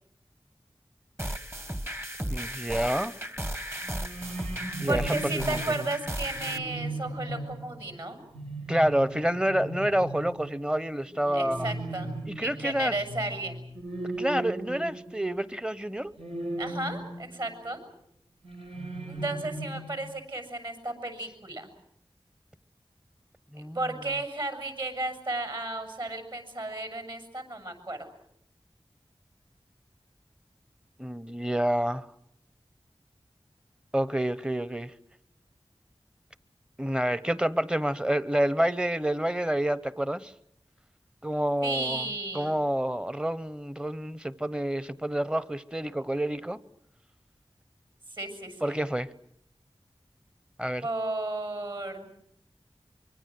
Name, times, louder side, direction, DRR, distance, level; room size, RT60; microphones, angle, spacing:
sound 1, 1.2-6.6, right 1 dB, 25° right, 1.5 m, -35 dB
voice 1, 2.3-3.1 4.8-5.9 8.7-11.7 12.3-12.9 14.2-16.1 23.5-23.8 31.0-32.1 33.9-34.9 36.8-40.3 41.2-42.1 42.3-46.6 48.6-49.1 50.6-50.8, right 1 dB, 10° right, 1.0 m, -28 dB
sound 2, 3.8-15.4 16.2-17.5 18.4-20.0, right 1 dB, 80° right, 4.9 m, -37 dB
voice 2, 4.9-8.2 11.3-12.1 12.4-13.6 16.6-17.8 19.1-21.7 23.7-28.0 41.6-42.5 48.1-48.7 50.8-52.1, right 2 dB, 55° right, 7.3 m, -34 dB
25.0 x 24.0 x 7.8 m
wide cardioid pair, 55°, 10 cm